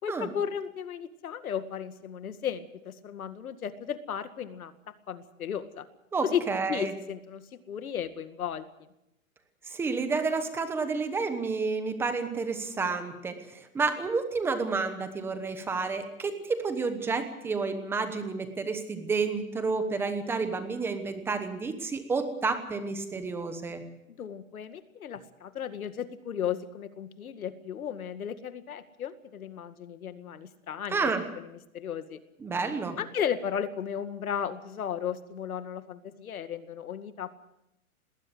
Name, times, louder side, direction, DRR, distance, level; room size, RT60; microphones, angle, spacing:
voice 1, 0.0-5.9 6.2-8.9 24.2-32.2 33.0-37.4, left 8 dB, 85° left, 11 dB, 2.1 m, -35 dB
voice 2, 6.1-6.9 9.6-23.8 30.9-31.2 32.4-33.0, right 4 dB, 5° right, 9 dB, 1.0 m, -30 dB
19.5 x 18.5 x 7.9 m, 0.88 s
hypercardioid pair, 165°, 42 cm